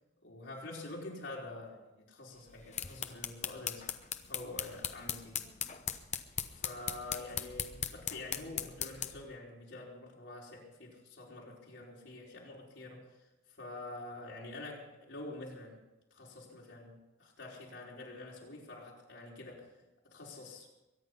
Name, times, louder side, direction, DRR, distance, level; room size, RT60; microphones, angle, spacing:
voice 1, 0.2-4.0 4.3-5.5 6.5-13.2 13.6-15.8 16.1-19.7 20.1-20.7, left 2 dB, 85° left, -3 dB, 4.8 m, -47 dB
sound 1, 2.5-9.3, left 9 dB, 40° left, 0.9 m, -39 dB
23.0 x 10.0 x 5.5 m, 0.99 s
head